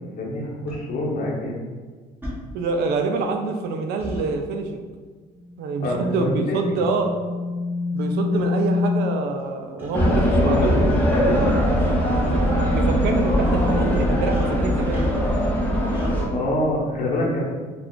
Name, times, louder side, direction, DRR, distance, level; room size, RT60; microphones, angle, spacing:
voice 1, 0.0-1.6 5.8-6.8 10.2-11.5 16.3-17.4, left 1 dB, 50° left, -3 dB, 0.9 m, -26 dB
sound 1, 0.7-0.8 2.2-2.4 4.0-4.3 6.0-6.2 7.1-7.2 8.0-8.1 8.3-8.5 9.8-9.9 11.3-11.5 11.8-11.9 13.4-13.7 14.3-15.4 15.9-16.1, equal, 10° right, 1.0 m, -34 dB
voice 2, 2.5-4.9 5.6-7.1 7.9-10.8 12.1-12.4 12.7-15.0, right 3 dB, 75° right, 4 dB, 0.4 m, -26 dB
sound 2, 5.4-9.3, left 3 dB, 45° right, 0.9 m, -27 dB
sound 3, 9.9-16.3, equal, 10° left, 0.7 m, -20 dB
2.4 x 2.3 x 3.6 m, 1.5 s
cardioid pair, 110°, 17 cm